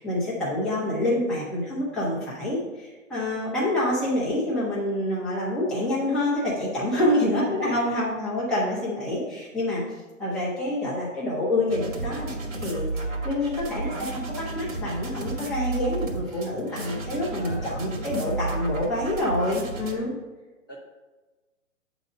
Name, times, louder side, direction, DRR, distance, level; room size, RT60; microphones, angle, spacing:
voice 1, 0.0-9.8 10.2-20.2, left 1 dB, ahead, -9 dB, 0.8 m, -27 dB
voice 2, 6.7-7.2 7.5-7.9 17.3-18.2 20.7-20.8, equal, 15° left, -8 dB, 0.4 m, -42 dB
sound 1, 11.7-19.9, right 2 dB, 80° right, 2.2 m, -32 dB
8.0 x 4.0 x 5.1 m, 1.2 s
hypercardioid pair, 165°, 39 cm